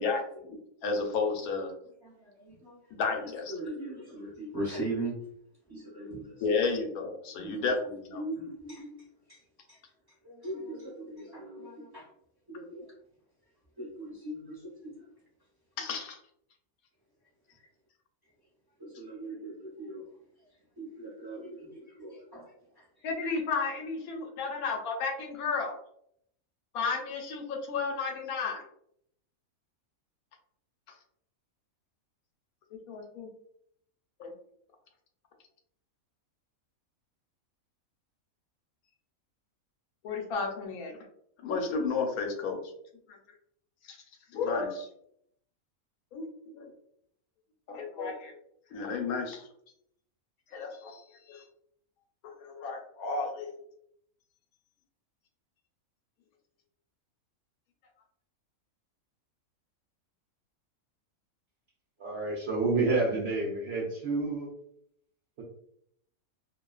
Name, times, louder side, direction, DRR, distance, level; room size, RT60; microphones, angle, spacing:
voice 1, 0.0-1.7 3.0-3.5 6.4-8.2 15.8-16.2 23.0-25.8 26.7-28.6 32.9-33.3 34.2-34.3 40.0-41.0 41.4-42.6 43.1-43.2 43.8-44.0 44.3-44.9 46.1-46.7 47.7-48.3 48.7-49.5 50.5-51.4 52.4-53.5, left 4 dB, 85° left, 3 dB, 1.0 m, -32 dB
voice 2, 2.0-2.8 3.5-5.1 5.7-6.3 7.3-7.7 8.1-9.0 9.3-9.4 9.7-9.8 10.2-12.1 12.5-12.9 13.8-15.0 18.8-20.0 20.8-22.8, right 2 dB, 25° right, -7 dB, 0.6 m, -39 dB
voice 3, 62.0-64.5 65.4-65.5, right 3 dB, 65° right, -3 dB, 0.6 m, -29 dB
2.4 x 2.3 x 2.2 m, 0.71 s
omnidirectional pair, 1.5 m